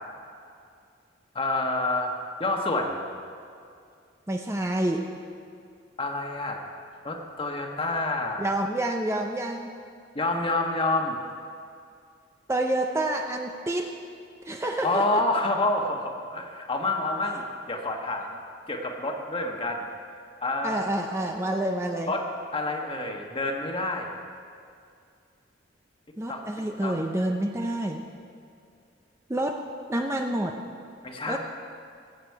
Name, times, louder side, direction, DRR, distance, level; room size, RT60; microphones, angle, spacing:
voice 1, 1.3-2.1 2.4-3.0 6.0-6.6 7.0-8.5 10.1-11.2 14.8-17.4 17.7-18.4 18.7-19.9 20.4-20.8 22.1-22.3 22.5-24.1 26.3-26.4 26.8-26.9 31.0-31.4, left 2 dB, 30° left, 2 dB, 1.3 m, -28 dB
voice 2, 4.3-5.0 8.4-9.7 12.5-13.9 14.5-15.2 20.6-22.1 26.2-28.0 29.3-29.6 29.9-30.6 31.3-31.4, right 1 dB, 15° right, 2 dB, 0.6 m, -28 dB
21.5 x 8.0 x 4.7 m, 2.4 s
head